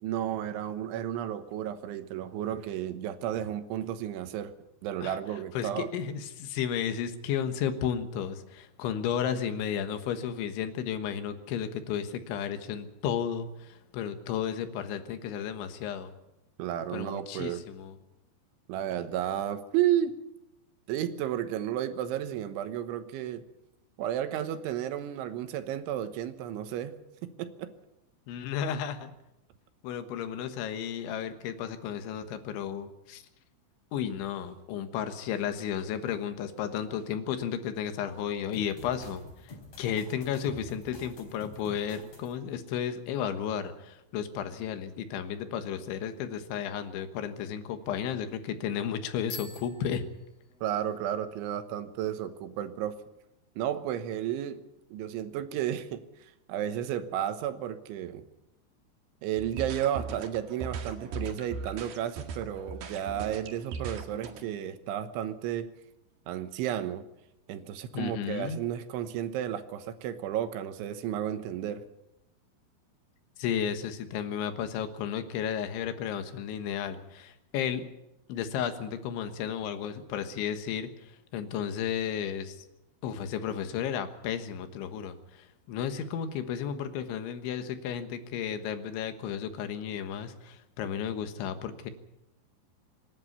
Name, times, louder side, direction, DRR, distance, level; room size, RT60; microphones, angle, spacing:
voice 1, 0.0-4.5 4.8-5.9 16.6-17.7 18.7-20.2 20.9-23.4 24.0-27.7 50.6-53.0 53.6-54.6 54.9-58.3 59.2-65.7 66.3-67.0 67.5-71.8, right 11 dB, 90° right, 10 dB, 3.6 m, -32 dB
voice 2, 5.6-16.1 16.9-18.0 28.3-29.1 29.8-33.2 33.9-50.1 67.9-68.6 73.4-77.8 78.3-82.7 83.0-91.9, left 8 dB, 85° left, 9 dB, 3.7 m, -33 dB
sound 1, 38.5-42.3, left 1 dB, 35° left, 5.0 m, -47 dB
Bicycle bell, 49.2-51.0, left 3 dB, 50° left, 5.1 m, -46 dB
sound 2, 59.4-64.4, right 4 dB, 60° right, 3.5 m, -39 dB
26.0 x 11.0 x 9.6 m, 0.89 s
omnidirectional pair, 5.4 m